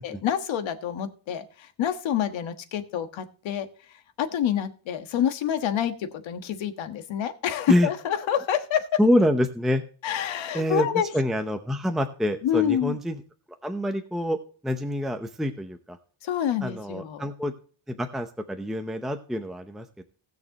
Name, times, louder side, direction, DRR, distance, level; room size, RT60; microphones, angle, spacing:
voice 1, 0.0-3.7 4.2-9.0 10.0-11.1 12.4-13.0 16.2-17.3, left 9 dB, 80° left, 8 dB, 1.5 m, -27 dB
voice 2, 9.0-9.8 10.5-10.9 11.1-13.2 13.6-14.4 14.6-16.0 16.6-17.5 17.9-20.0, equal, ahead, 5 dB, 0.7 m, -26 dB
19.0 x 6.6 x 2.9 m, 0.41 s
cardioid pair, 150°, 45 cm